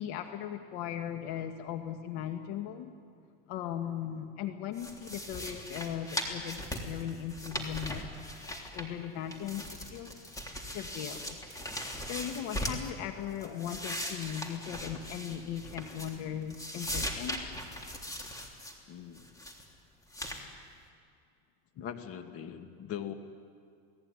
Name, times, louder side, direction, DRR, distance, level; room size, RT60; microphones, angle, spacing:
voice 1, 0.0-2.9 3.5-8.0 8.4-10.1 10.6-11.6 12.1-17.4, left 9 dB, 65° left, 6 dB, 1.9 m, -38 dB
sound 1, 4.8-9.1 9.3-12.9 13.3-16.2 16.5-18.7 19.2-19.6 20.1-20.4, equal, 10° left, 3.4 m, -39 dB
voice 2, 18.9-19.2 21.8-23.1, left 9 dB, 45° left, 7 dB, 2.2 m, -41 dB
29.5 x 18.5 x 9.9 m, 2.3 s
cardioid pair, 140°, 31 cm